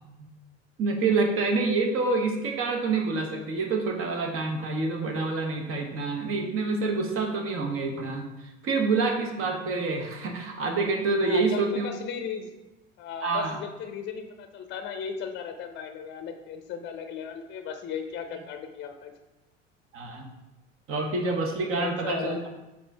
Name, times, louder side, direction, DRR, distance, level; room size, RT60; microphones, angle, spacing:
voice 1, 0.8-8.3 8.6-11.9 13.2-13.5 19.9-20.3 20.9-22.4, right 3 dB, 35° right, 3 dB, 1.1 m, -27 dB
voice 2, 11.2-12.5 13.0-19.1 21.8-22.4, left 7 dB, 30° left, 6 dB, 0.7 m, -36 dB
7.3 x 2.7 x 4.6 m, 1.1 s
figure-of-eight pair, 70°, 36 cm